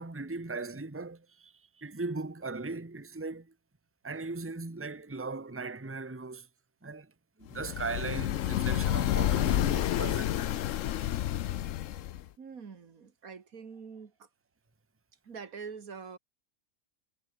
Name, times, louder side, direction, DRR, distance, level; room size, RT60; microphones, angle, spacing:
voice 1, 0.0-3.5 4.0-6.5 6.8-7.1 7.4-10.5, right 3 dB, 10° right, 1.3 m, -38 dB
sound 1, 7.6-12.3, left 12 dB, 70° left, 1.0 m, -29 dB
voice 2, 12.4-14.3 15.2-16.2, right 5 dB, 80° right, 2.3 m, -45 dB
omnidirectional pair, 1.5 m